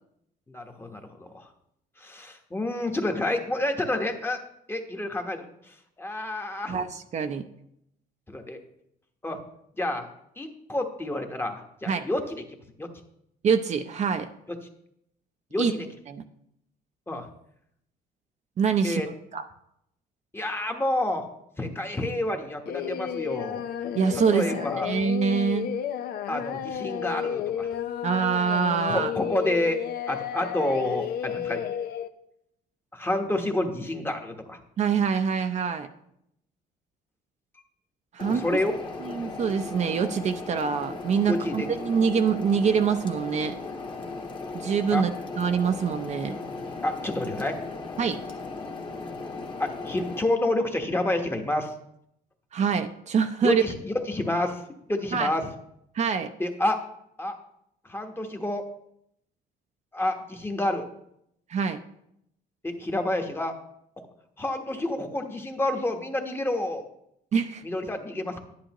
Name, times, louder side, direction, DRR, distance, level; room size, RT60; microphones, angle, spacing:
voice 1, 0.5-1.4 2.0-4.4 4.7-6.8 8.3-8.6 9.2-9.4 9.8-10.1 10.4-12.4 12.8-12.9 15.5-15.9 17.1-17.3 18.8-19.1 20.3-21.3 21.6-23.6 24.1-24.9 26.3-27.7 28.9-29.8 30.1-31.6 32.9-34.6 38.3-38.7 41.3-41.7 44.9-45.0 46.8-47.6 49.6-51.7 53.4-54.6 54.9-55.5 56.4-56.8 57.2-57.3 57.8-58.6 59.9-60.8 62.6-63.5 64.4-66.8 67.6-68.4, left 1 dB, 15° left, 4 dB, 1.1 m, -29 dB
voice 2, 6.7-7.4 11.9-12.0 13.4-14.3 15.6-15.7 16.1-16.2 18.6-19.0 19.3-19.4 23.9-25.7 28.0-29.1 34.8-35.9 38.1-38.6 39.0-43.6 44.5-46.4 48.0-48.2 52.5-53.6 55.1-55.3 55.9-56.3 61.5-61.8 67.3-67.6, right 6 dB, 45° right, 7 dB, 0.6 m, -25 dB
Singing, 22.7-32.1, left 9 dB, 65° left, 0.6 m, -32 dB
sound 1, 38.2-50.2, left 3 dB, 30° left, 1.4 m, -37 dB
11.0 x 10.0 x 3.0 m, 0.77 s
cardioid pair, 110°, 17 cm